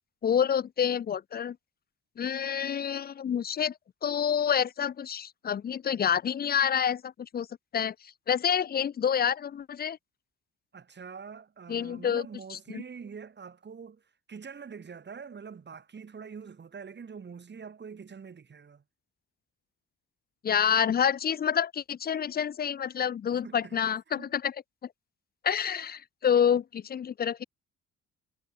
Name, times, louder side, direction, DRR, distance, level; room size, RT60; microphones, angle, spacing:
voice 1, 0.2-1.6 2.2-3.7 4.0-7.5 7.7-10.0 11.7-12.3 12.5-12.8 20.4-24.5 25.4-27.4, left 8 dB, 30° left, 0.4 m, -28 dB
voice 2, 10.7-18.8 23.3-23.8 24.1-24.3, right 6 dB, 35° right, 2.1 m, -45 dB
cardioid pair, 90°, 30 cm